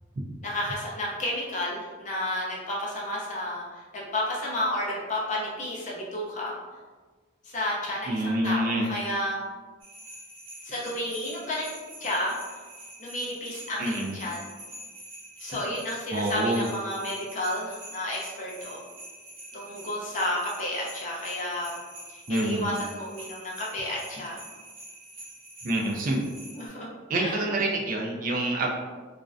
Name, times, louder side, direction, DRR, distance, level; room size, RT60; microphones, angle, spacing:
voice 1, 0.4-6.5 7.4-9.4 10.6-11.7 12.0-12.4 13.0-14.5 15.4-18.8 19.5-24.4 26.6-26.9 27.2-27.4, left 1 dB, 40° left, -5 dB, 0.6 m, -31 dB
voice 2, 8.1-8.9 13.8-14.2 16.1-16.7 22.3-22.7 25.6-26.2 27.1-28.7, right 1 dB, 45° right, -1 dB, 0.3 m, -27 dB
sound 1, 9.8-26.7, right 1 dB, 90° right, 0.6 m, -45 dB
2.4 x 2.1 x 2.4 m, 1.4 s
head